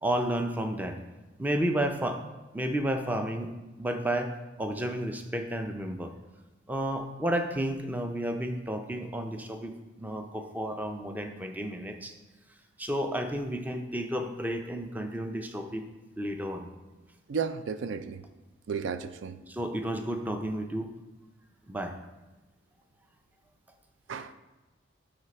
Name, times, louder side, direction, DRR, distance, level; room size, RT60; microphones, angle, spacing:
voice 1, 0.0-1.0 1.4-2.2 2.5-3.5 3.8-4.3 4.6-6.1 6.7-12.1 12.8-15.8 16.2-16.7 19.5-20.9 21.7-22.0, right 1 dB, 10° right, 5 dB, 0.5 m, -31 dB
voice 2, 17.3-18.2 18.7-19.4 24.1-24.3, right 6 dB, 75° right, 11 dB, 0.4 m, -33 dB
10.0 x 4.0 x 4.2 m, 1.1 s
head